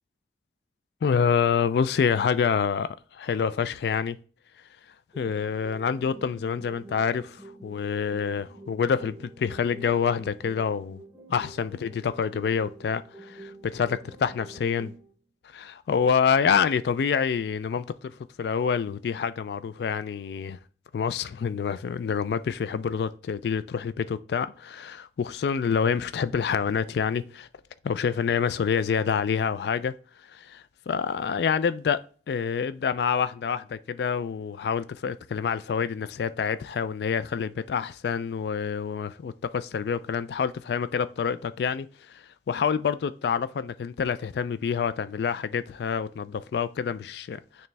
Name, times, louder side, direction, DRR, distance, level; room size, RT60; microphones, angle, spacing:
voice 1, 1.0-4.2 5.2-11.0 11.3-14.9 15.5-18.1 18.4-20.6 20.9-27.5 27.8-29.9 30.3-32.0 32.3-41.9 42.5-47.7, left 6 dB, 70° left, 0.3 m, -27 dB
sound 1, 5.1-15.1, right 2 dB, 10° right, 0.8 m, -48 dB
9.1 x 3.2 x 3.3 m
head